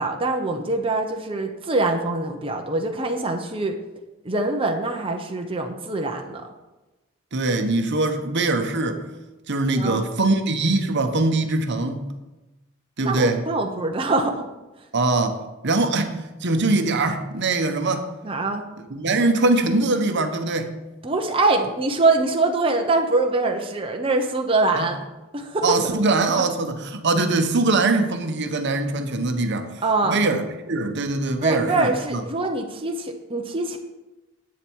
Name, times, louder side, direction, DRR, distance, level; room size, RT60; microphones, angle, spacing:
voice 1, 0.0-3.8 4.2-6.5 9.8-10.1 13.0-14.4 18.2-18.7 21.0-25.0 25.3-25.8 29.8-30.2 31.4-33.8, right 2 dB, 25° right, 3 dB, 0.8 m, -23 dB
voice 2, 7.3-9.0 9.5-12.1 13.0-13.4 14.9-15.4 15.6-18.1 18.9-20.8 24.7-24.9 25.6-32.2, right 2 dB, 55° right, 6 dB, 1.0 m, -22 dB
10.5 x 8.4 x 4.6 m, 1.1 s
head